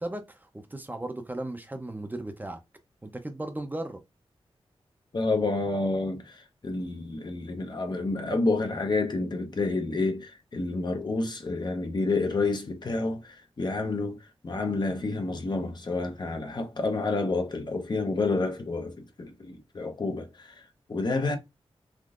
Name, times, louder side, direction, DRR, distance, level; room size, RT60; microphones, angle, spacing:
voice 1, 0.0-2.6 3.0-4.0, right 1 dB, 15° right, 0.5 m, -36 dB
voice 2, 5.1-21.4, left 3 dB, 45° left, 0.7 m, -29 dB
3.6 x 2.6 x 2.4 m
wide cardioid pair, 90°, 10 cm